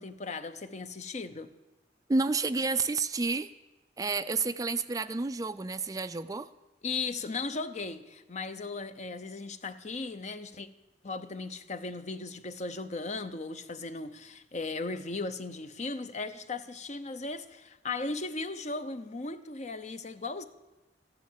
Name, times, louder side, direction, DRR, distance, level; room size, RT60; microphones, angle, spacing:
voice 1, 0.0-1.5 6.8-10.7 11.0-20.4, left 3 dB, 40° left, 0.7 m, -37 dB
voice 2, 2.1-3.5 4.0-6.5, right 3 dB, 20° right, 0.4 m, -30 dB
14.0 x 10.5 x 7.4 m
head